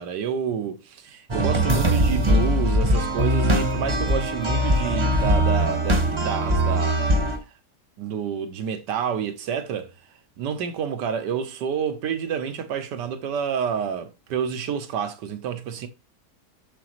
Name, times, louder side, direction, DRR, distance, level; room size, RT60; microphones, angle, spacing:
voice 1, 0.0-7.4 8.0-9.9 10.4-15.9, right 7 dB, 85° right, 1.5 m, -29 dB
sound 1, 1.3-7.4, equal, 25° right, 0.7 m, -21 dB
6.8 x 6.0 x 3.0 m
omnidirectional pair, 1.8 m